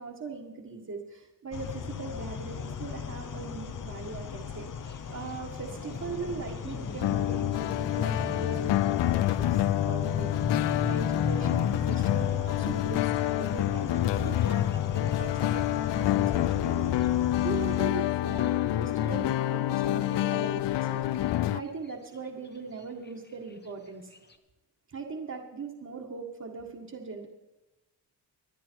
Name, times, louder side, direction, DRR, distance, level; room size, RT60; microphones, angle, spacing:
voice 1, 0.0-4.7 5.1-24.1 24.9-27.3, right 4 dB, 40° right, -1 dB, 1.8 m, -40 dB
sound 1, 1.5-17.9, left 6 dB, 50° left, 0.9 m, -35 dB
Thunder, 4.8-24.4, left 3 dB, 25° left, 1.2 m, -50 dB
sound 2, 7.0-21.6, left 14 dB, 80° left, 0.6 m, -28 dB
25.0 x 9.9 x 4.6 m, 1.0 s
cardioid pair, 100°, 41 cm